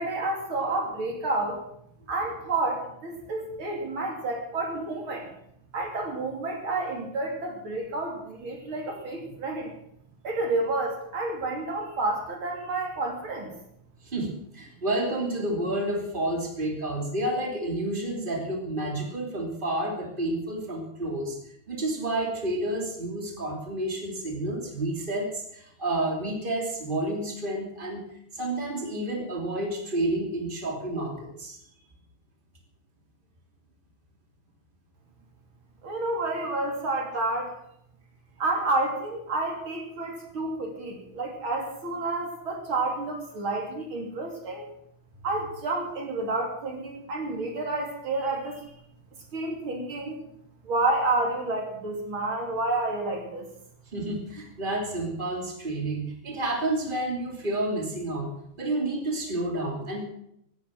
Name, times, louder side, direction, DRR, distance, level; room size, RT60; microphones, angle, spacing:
voice 1, 0.0-1.6 2.1-5.3 5.7-9.7 10.2-13.5 35.8-37.6 38.4-44.7 45.2-48.7 49.3-50.3 50.6-53.5, right 2 dB, 80° right, 2 dB, 3.8 m, -30 dB
voice 2, 14.0-21.4 21.7-28.0 28.3-31.6 53.9-60.1, right 1 dB, 25° right, 1 dB, 3.2 m, -30 dB
17.5 x 9.1 x 7.4 m, 0.73 s
omnidirectional pair, 2.2 m